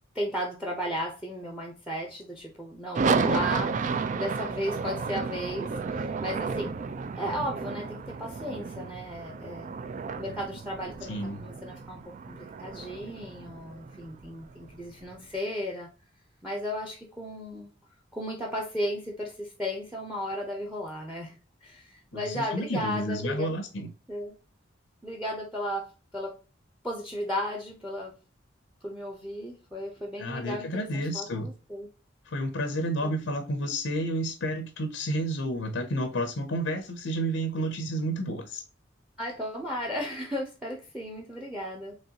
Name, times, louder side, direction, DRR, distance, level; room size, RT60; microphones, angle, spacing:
voice 1, 0.1-6.7 7.2-9.7 10.2-15.9 16.4-17.7 18.1-21.3 21.6-23.6 24.1-24.3 25.0-25.9 26.1-26.4 26.8-28.1 28.8-31.9 33.0-33.1 39.2-42.0, equal, 5° right, 0.7 m, -35 dB
sound 1, 3.0-15.1, right 5 dB, 40° right, 0.3 m, -32 dB
voice 2, 11.1-11.4 22.1-23.9 30.2-31.5 32.2-38.6, right 1 dB, 85° left, 0.6 m, -31 dB
4.0 x 3.1 x 2.7 m
head